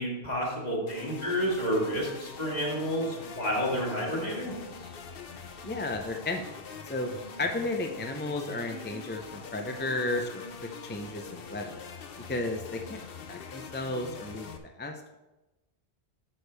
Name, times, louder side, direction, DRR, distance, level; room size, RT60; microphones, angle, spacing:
voice 1, 0.0-4.5, equal, 40° left, -3 dB, 2.1 m, -30 dB
sound 1, 0.9-14.6, left 5 dB, 65° left, 0.9 m, -43 dB
voice 2, 5.6-6.4 6.8-7.1 7.4-10.4 10.8-11.8 12.3-13.0 13.3-14.5 14.8-15.2, left 2 dB, 15° left, 4 dB, 0.3 m, -33 dB
9.9 x 6.4 x 3.3 m, 1.0 s
omnidirectional pair, 1.1 m